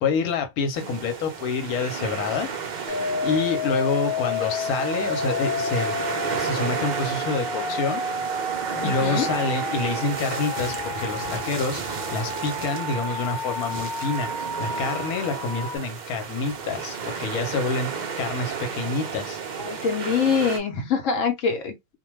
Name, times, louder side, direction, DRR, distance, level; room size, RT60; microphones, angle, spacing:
voice 1, 0.0-2.5 3.2-6.0 6.3-8.0 8.8-19.4, left 4 dB, 85° left, 1.2 m, -27 dB
sound 1, 0.7-20.6, right 6 dB, 75° right, 0.4 m, -32 dB
sound 2, 2.9-15.8, left 3 dB, 25° left, 0.5 m, -31 dB
voice 2, 8.8-9.3 19.6-22.0, left 6 dB, 65° left, 1.0 m, -24 dB
2.4 x 2.2 x 3.0 m
omnidirectional pair, 1.5 m